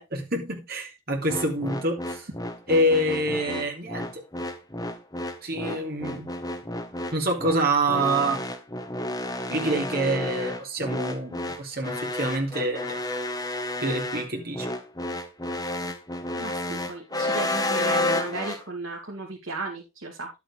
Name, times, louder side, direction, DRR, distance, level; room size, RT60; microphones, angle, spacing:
voice 1, 0.0-2.3 2.7-4.2 5.4-6.3 7.1-8.4 9.5-13.0 13.8-14.7, right 1 dB, 50° right, 3.1 m, -26 dB
sound 1, 1.3-18.6, left 1 dB, 20° left, 1.3 m, -31 dB
voice 2, 16.3-20.3, right 3 dB, 80° right, 2.7 m, -35 dB
11.5 x 8.3 x 3.4 m
head